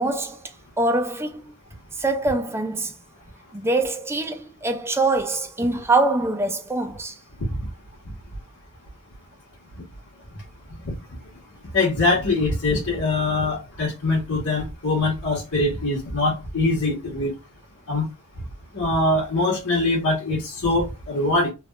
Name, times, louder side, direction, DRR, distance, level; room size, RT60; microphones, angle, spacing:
voice 1, 0.0-1.5 2.0-2.9 3.5-7.2, right 2 dB, 10° right, 0.4 m, -24 dB
voice 2, 11.7-17.3 17.9-18.1 18.7-21.5, left 2 dB, 90° left, 1.3 m, -23 dB
3.4 x 2.3 x 2.3 m
head